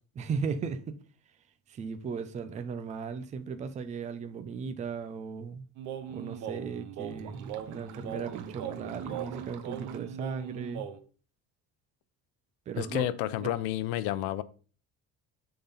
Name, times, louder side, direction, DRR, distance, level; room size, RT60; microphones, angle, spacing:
voice 1, 0.2-0.9 1.7-5.7 6.1-10.9 12.7-13.1 13.4-13.5, right 5 dB, 20° right, 0.4 m, -36 dB
sound 1, 5.8-11.0, right 9 dB, 55° right, 0.8 m, -39 dB
voice 2, 12.8-14.4, left 14 dB, 85° left, 0.7 m, -30 dB
7.0 x 3.9 x 5.5 m
cardioid pair, 180°, 35 cm